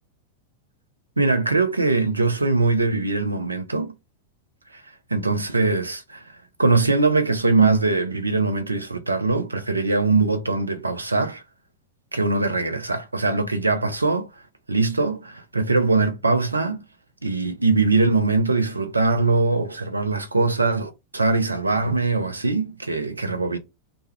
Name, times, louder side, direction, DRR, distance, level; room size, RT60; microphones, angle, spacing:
voice 1, 1.2-3.9 5.1-6.3 6.6-11.4 12.1-14.3 14.7-16.8 17.2-23.6, right 3 dB, 80° right, 0.4 m, -22 dB
2.2 x 2.1 x 3.0 m
figure-of-eight pair, 90°, 0 cm